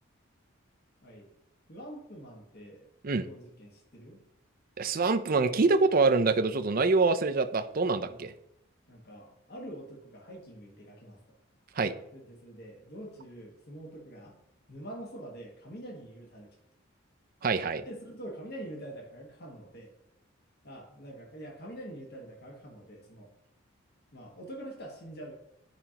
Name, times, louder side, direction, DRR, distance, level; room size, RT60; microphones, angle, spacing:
voice 1, 1.7-2.8 3.2-4.2 8.0-8.2 8.9-11.2 12.1-14.3 14.7-16.5 17.9-19.9 20.6-23.3 24.1-25.3, right 1 dB, 50° left, 0 dB, 1.5 m, -45 dB
voice 2, 4.8-8.3 11.8-11.9 17.4-17.8, right 3 dB, 45° right, 8 dB, 0.5 m, -25 dB
11.5 x 5.1 x 2.9 m, 0.82 s
head